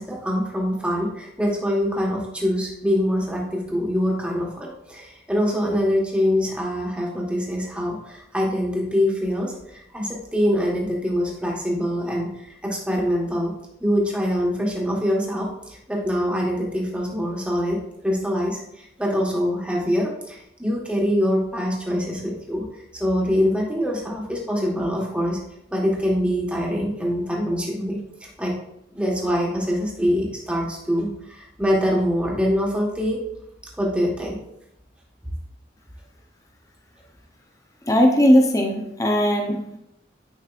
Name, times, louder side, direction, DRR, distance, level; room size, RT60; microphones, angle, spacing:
voice 1, 0.0-13.5 13.8-22.6 22.9-25.4 25.7-28.6 28.9-33.2 33.8-34.4, equal, 5° right, -2 dB, 1.4 m, -24 dB
voice 2, 37.9-39.6, equal, 20° left, 2 dB, 0.7 m, -18 dB
9.7 x 5.3 x 2.5 m, 0.80 s
head